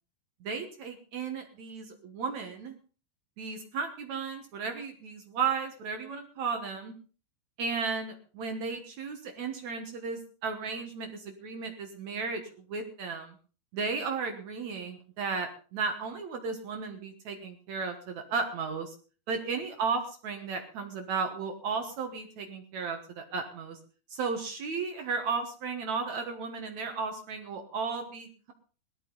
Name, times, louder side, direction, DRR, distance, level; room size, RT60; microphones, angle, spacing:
voice 1, 0.4-2.8 3.4-6.9 7.6-12.4 12.7-13.4 13.7-18.9 19.3-23.8 24.1-28.5, right 5 dB, 65° right, 5 dB, 1.8 m, -34 dB
18.0 x 12.5 x 3.9 m, 0.38 s
omnidirectional pair, 5.0 m